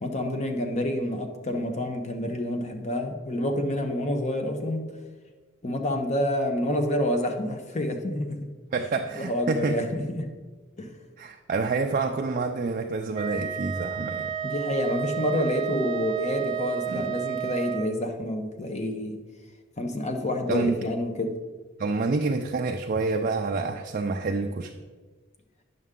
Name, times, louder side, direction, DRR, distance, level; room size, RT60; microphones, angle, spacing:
voice 1, 0.0-4.9 5.6-8.5 9.2-10.3 10.8-10.9 14.4-19.2 19.8-21.4, left 1 dB, 35° left, 5 dB, 0.8 m, -28 dB
voice 2, 8.7-9.8 11.2-14.3 16.9-17.1 20.5-20.8 21.8-24.7, right 3 dB, 40° right, 3 dB, 0.4 m, -27 dB
Wind instrument woodwind instrument, 13.1-18.0, right 9 dB, 25° right, 0.9 m, -31 dB
9.4 x 6.5 x 3.7 m, 1.4 s
head